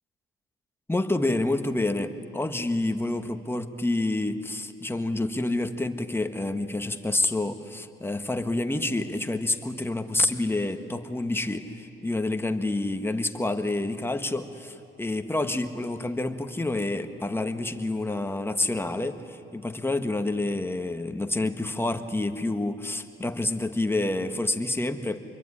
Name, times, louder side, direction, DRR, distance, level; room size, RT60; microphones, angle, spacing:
voice 1, 0.9-25.2, left 2 dB, 10° left, 7 dB, 1.6 m, -28 dB
26.5 x 22.5 x 10.0 m, 3.0 s
cardioid pair, 90°, 20 cm